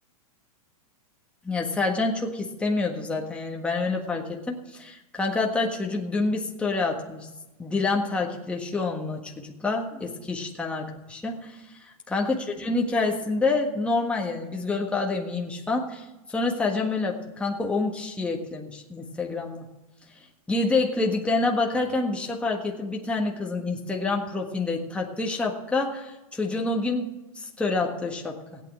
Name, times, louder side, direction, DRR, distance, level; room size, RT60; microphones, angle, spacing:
voice 1, 1.4-7.3 7.6-19.6 20.5-28.6, left 3 dB, 5° left, 0 dB, 1.5 m, -27 dB
16.5 x 9.0 x 6.2 m, 1.0 s
hypercardioid pair, 125°, 19 cm